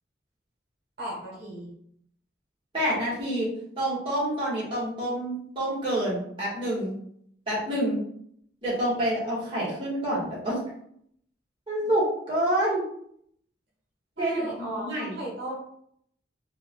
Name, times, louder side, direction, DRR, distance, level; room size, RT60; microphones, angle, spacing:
voice 1, 1.0-1.7 14.2-15.6, right 1 dB, 60° right, -5 dB, 1.3 m, -36 dB
voice 2, 2.7-3.5 3.8-6.9 7.5-8.0 8.6-10.6 11.7-12.8 14.2-15.1, right 1 dB, 30° right, -8 dB, 1.5 m, -27 dB
4.5 x 2.4 x 2.3 m, 0.68 s
head